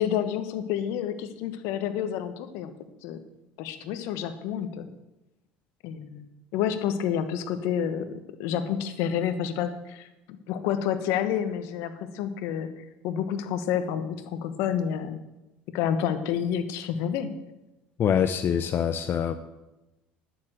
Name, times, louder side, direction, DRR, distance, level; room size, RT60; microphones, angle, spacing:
voice 1, 0.0-2.7 3.0-3.2 3.6-4.9 5.8-12.7 13.0-15.2 15.7-17.3, left 9 dB, 70° left, 10 dB, 1.2 m, -29 dB
voice 2, 18.0-19.3, left 8 dB, 45° left, 9 dB, 0.7 m, -24 dB
12.0 x 7.0 x 7.8 m, 1.0 s
hypercardioid pair, 80°, 5 cm